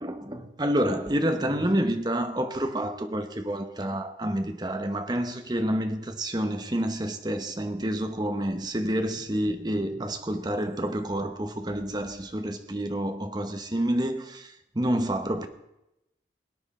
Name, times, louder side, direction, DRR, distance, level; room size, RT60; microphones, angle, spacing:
voice 1, 0.0-15.5, right 1 dB, 25° right, 0.9 m, -28 dB
17.5 x 9.7 x 4.2 m
head